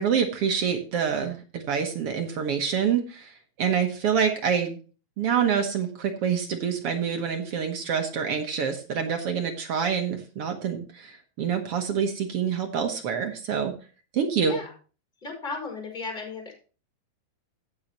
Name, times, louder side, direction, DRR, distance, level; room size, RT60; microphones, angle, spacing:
voice 1, 0.0-4.8 5.2-13.7 14.1-14.6, right 7 dB, 65° right, 4 dB, 1.5 m, -26 dB
voice 2, 15.2-16.6, left 4 dB, 15° left, 2 dB, 5.1 m, -35 dB
15.0 x 7.1 x 3.0 m, 0.36 s
omnidirectional pair, 4.0 m